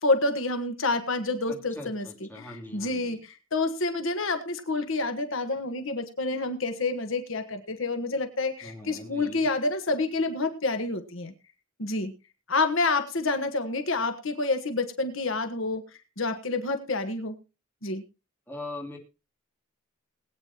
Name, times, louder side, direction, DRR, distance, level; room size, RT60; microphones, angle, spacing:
voice 1, 0.0-2.1 2.4-11.3 11.8-12.1 12.5-15.8 16.2-17.4 17.8-18.0, left 3 dB, 65° left, 8 dB, 1.4 m, -28 dB
voice 2, 1.5-3.2 8.6-9.5 18.5-19.0, left 1 dB, 10° left, 0 dB, 3.0 m, -41 dB
21.0 x 9.1 x 2.9 m, 0.29 s
head